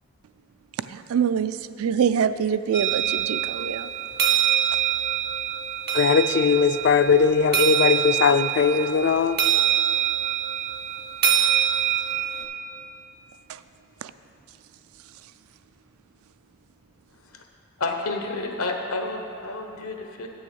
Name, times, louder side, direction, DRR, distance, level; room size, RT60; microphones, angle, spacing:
voice 1, 0.7-3.9 4.7-4.8 13.5-13.6 14.0-14.1 15.0-15.3, right 7 dB, 80° right, 0.3 m, -26 dB
sound 1, 2.7-12.4, right 10 dB, 50° right, 0.7 m, -25 dB
voice 2, 5.9-9.4, left 6 dB, 55° left, 0.3 m, -19 dB
voice 3, 17.8-20.3, left 3 dB, 90° left, 1.0 m, -30 dB
8.6 x 6.2 x 6.3 m
head